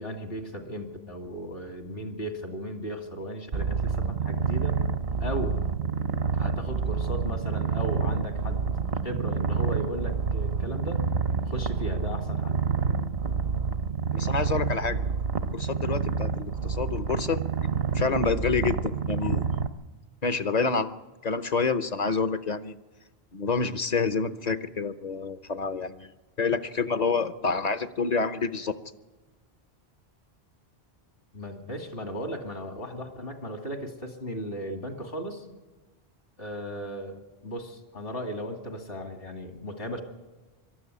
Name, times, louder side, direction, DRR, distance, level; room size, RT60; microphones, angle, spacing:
voice 1, 0.0-4.8 5.2-5.6 6.3-8.7 9.0-11.1 11.4-12.6 31.3-35.5 36.4-40.0, equal, 70° left, 5 dB, 2.6 m, -36 dB
Purr, 3.5-19.7, right 5 dB, 70° right, 1.1 m, -28 dB
voice 2, 14.1-15.0 15.5-17.4 17.9-19.5 20.2-22.8 23.3-26.1 26.4-28.8, left 4 dB, 45° left, 12 dB, 0.8 m, -28 dB
22.0 x 13.0 x 9.6 m, 1.2 s
omnidirectional pair, 1.0 m